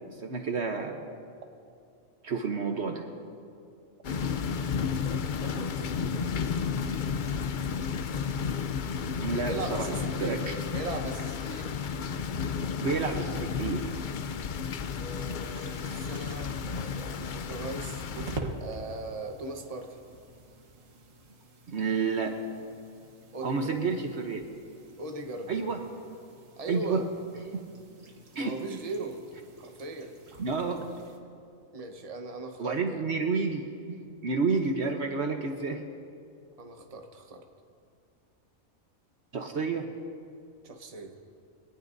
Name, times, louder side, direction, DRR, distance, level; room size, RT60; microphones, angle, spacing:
voice 1, 0.2-1.1 2.2-3.0 9.2-9.9 10.2-10.5 12.8-13.8 21.7-22.4 23.4-24.4 25.5-25.8 26.7-27.0 27.5-27.6 28.3-28.5 30.4-30.9 32.6-34.0 34.2-35.8 39.3-39.9, right 4 dB, 55° right, 4 dB, 1.2 m, -30 dB
sound 1, 4.0-18.4, left 6 dB, 55° left, 0.5 m, -32 dB
voice 2, 4.9-6.0 9.3-10.4 10.7-11.7 14.9-18.1 18.3-20.0 23.3-23.7 25.0-25.5 26.6-27.1 28.0-28.1 28.4-29.2 29.6-30.1 31.7-33.0 36.6-37.4 40.6-41.2, right 2 dB, 30° right, 3 dB, 1.1 m, -39 dB
sound 2, 15.4-31.2, right 2 dB, 75° right, 1.7 m, -46 dB
23.0 x 18.5 x 2.6 m, 2.4 s
omnidirectional pair, 1.4 m